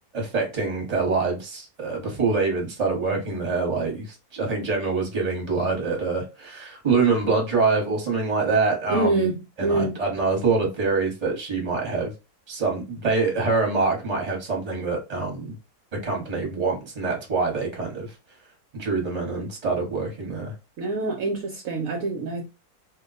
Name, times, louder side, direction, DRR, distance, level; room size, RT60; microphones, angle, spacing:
voice 1, 0.1-9.3 9.6-12.1 12.5-15.5 16.0-18.1 18.7-20.5, right 4 dB, 30° right, 1.0 m, -25 dB
voice 2, 8.9-10.0 20.8-22.4, right 3 dB, 70° right, 0.9 m, -25 dB
2.6 x 2.2 x 3.9 m
omnidirectional pair, 1.7 m